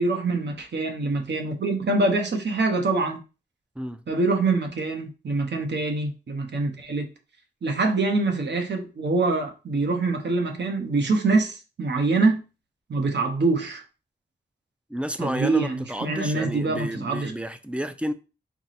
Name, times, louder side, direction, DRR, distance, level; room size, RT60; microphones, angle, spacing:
voice 1, 0.0-3.2 4.1-7.1 7.6-12.4 12.9-13.8 15.2-17.3, right 3 dB, 75° right, 0.8 m, -24 dB
voice 2, 14.9-18.1, equal, 5° right, 0.3 m, -31 dB
4.5 x 2.0 x 4.1 m
wide cardioid pair, 95°, 18 cm